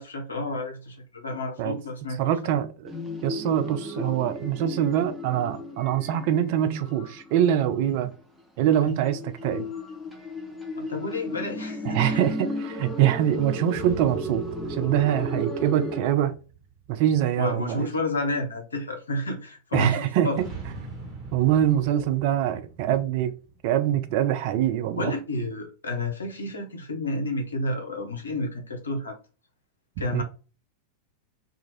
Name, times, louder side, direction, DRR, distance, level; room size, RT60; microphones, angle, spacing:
voice 1, 0.0-2.2 8.8-8.9 10.8-12.2 17.4-20.4 24.9-29.2 30.0-30.2, left 1 dB, 70° left, 0.7 m, -30 dB
voice 2, 2.2-2.9 3.2-8.1 8.6-9.7 11.9-14.4 14.7-16.3 16.9-17.9 19.7-20.3 21.3-23.3 23.6-25.1 30.1-30.2, right 11 dB, 50° right, 0.4 m, -24 dB
sound 1, 2.9-8.1 8.9-16.0, left 1 dB, ahead, 0.7 m, -34 dB
sound 2, 13.7-17.4 20.3-24.1, right 4 dB, 25° right, 1.2 m, -42 dB
2.7 x 2.4 x 3.0 m
figure-of-eight pair, 90°, 0 cm